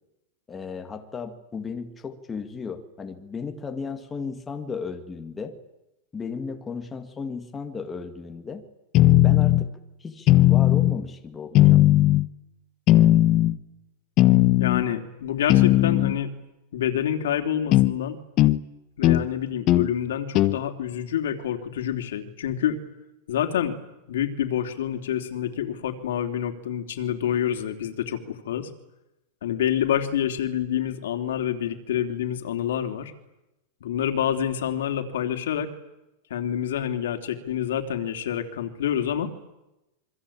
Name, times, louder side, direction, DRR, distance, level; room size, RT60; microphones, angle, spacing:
voice 1, 0.5-5.6 6.1-8.6 9.2-9.7 10.0-11.8, left 5 dB, 10° left, 6 dB, 2.1 m, -35 dB
sound 1, 8.9-9.7 10.3-11.0 11.6-12.3 12.9-13.6 14.2-14.9 15.5-16.2 17.7-17.9 18.4-18.6 19.0-19.3 19.7-19.9 20.4-20.6, left 15 dB, 30° left, 1.1 m, -17 dB
voice 2, 14.6-16.3 16.7-18.2 19.0-22.8 23.3-23.8 24.1-28.7 29.4-33.1 33.8-35.7 36.3-39.3, left 9 dB, 90° left, 6 dB, 3.4 m, -27 dB
27.5 x 24.0 x 8.8 m, 0.94 s
supercardioid pair, 170°, 0 cm